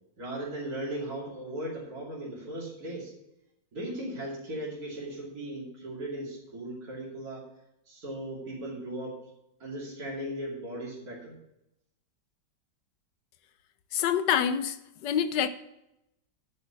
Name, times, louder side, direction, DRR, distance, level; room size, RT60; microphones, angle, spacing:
voice 1, 0.2-3.1 3.7-7.5 7.9-9.2 9.6-11.3, right 1 dB, 55° right, -6 dB, 3.3 m, -37 dB
voice 2, 13.9-14.8 15.0-15.5, left 8 dB, 75° left, 11 dB, 1.3 m, -26 dB
10.5 x 5.7 x 6.8 m, 0.85 s
omnidirectional pair, 1.9 m